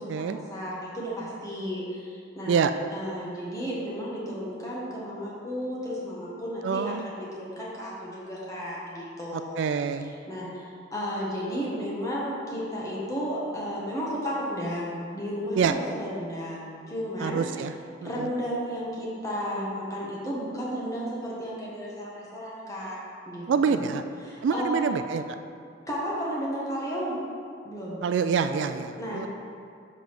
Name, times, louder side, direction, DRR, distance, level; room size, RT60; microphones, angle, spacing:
voice 1, 0.0-9.6 10.0-17.4 18.0-23.0 23.3-23.9 24.2-24.9 25.9-27.2 27.6-28.0 29.0-29.3, equal, 15° left, -6 dB, 1.4 m, -33 dB
voice 2, 6.6-7.1 9.3-10.1 15.6-15.7 17.2-17.7 18.0-18.3 23.5-24.0 24.4-25.2 28.0-29.3, right 6 dB, 70° right, 9 dB, 0.3 m, -26 dB
5.3 x 4.8 x 5.9 m, 2.3 s
head